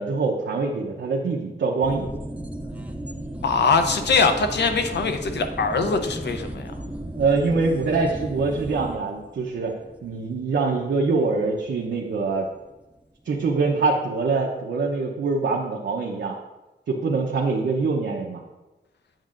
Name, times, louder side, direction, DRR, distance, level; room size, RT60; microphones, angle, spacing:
voice 1, 0.0-2.1 7.1-12.5 13.2-16.4 16.9-18.4, right 4 dB, 85° right, -1 dB, 0.8 m, -24 dB
sound 1, 1.8-12.7 13.0-13.1, right 1 dB, 5° right, 0.4 m, -36 dB
voice 2, 3.4-6.7, left 4 dB, 75° left, 7 dB, 0.7 m, -22 dB
8.9 x 6.4 x 2.5 m, 1.1 s
wide cardioid pair, 150°, 18 cm